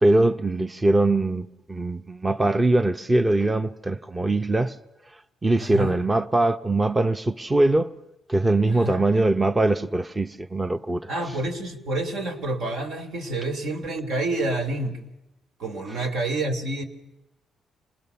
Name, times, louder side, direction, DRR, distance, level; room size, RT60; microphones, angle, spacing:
voice 1, 0.0-4.8 5.4-7.9 8.3-11.1, right 2 dB, 20° right, 0.8 m, -22 dB
voice 2, 5.6-6.0 8.7-9.1 11.1-15.0 15.6-16.8, right 2 dB, 70° right, 2.9 m, -28 dB
27.0 x 20.0 x 7.0 m
cardioid pair, 90°, 0 cm